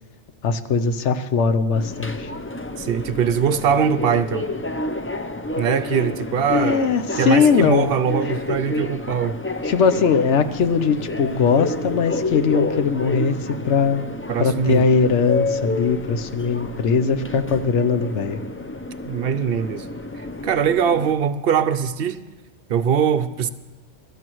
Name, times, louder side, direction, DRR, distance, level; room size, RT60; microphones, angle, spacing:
voice 1, 0.4-2.3 6.5-7.9 9.6-14.0 14.4-18.4, left 5 dB, 80° left, 1.1 m, -20 dB
Subway metro underground, 1.7-21.1, left 2 dB, 20° left, 0.3 m, -30 dB
voice 2, 2.8-4.5 5.6-9.4 14.3-14.8 19.1-19.9 20.4-22.2 22.7-23.5, right 7 dB, 60° right, 0.7 m, -22 dB
23.0 x 13.0 x 3.1 m
omnidirectional pair, 1.2 m